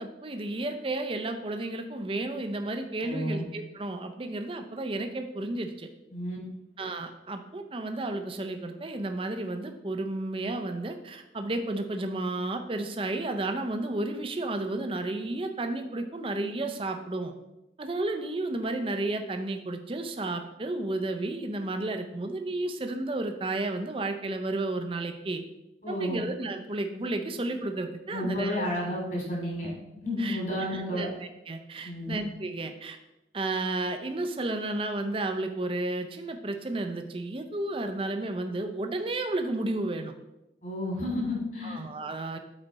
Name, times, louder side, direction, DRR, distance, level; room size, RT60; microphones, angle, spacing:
voice 1, 0.0-5.9 6.8-17.3 17.8-25.4 25.9-28.7 30.2-30.4 30.7-31.1 31.5-33.0 33.3-40.1 41.6-42.4, right 2 dB, 30° right, 6 dB, 0.5 m, -32 dB
voice 2, 3.0-3.4 6.1-6.4 25.8-26.2 28.1-29.7 30.0-31.1 31.8-32.2 40.6-41.8, left 1 dB, 45° left, -2 dB, 2.7 m, -31 dB
8.8 x 4.1 x 4.1 m, 0.92 s
head